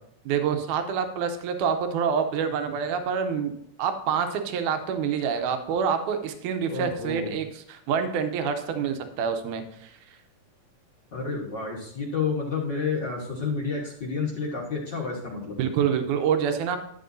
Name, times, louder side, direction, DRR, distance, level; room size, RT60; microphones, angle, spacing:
voice 1, 0.3-3.5 3.8-9.9 15.6-16.8, right 7 dB, 80° right, 7 dB, 2.2 m, -27 dB
voice 2, 6.7-7.4 11.1-15.6, left 4 dB, 50° left, -2 dB, 1.4 m, -30 dB
11.5 x 7.6 x 2.7 m, 0.71 s
omnidirectional pair, 3.6 m